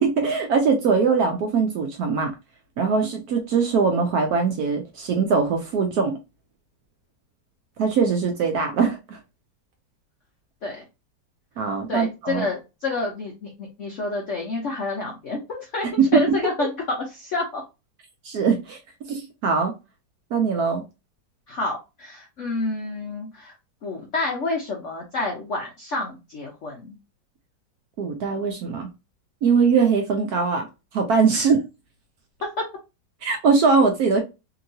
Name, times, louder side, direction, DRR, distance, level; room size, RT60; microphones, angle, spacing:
voice 1, 0.0-2.3 2.8-6.1 7.8-9.2 11.6-12.5 16.0-16.1 16.6-16.7 18.2-18.8 19.1-19.7 20.3-20.8 28.0-28.9 29.4-30.7 30.9-31.6 33.2-34.2, right 5 dB, 70° right, 0.9 m, -21 dB
voice 2, 11.9-15.9 16.1-17.6 21.5-23.5 23.8-26.9 31.3-31.5 32.4-32.6, left 3 dB, 70° left, 0.7 m, -29 dB
2.9 x 2.8 x 2.6 m
omnidirectional pair, 2.0 m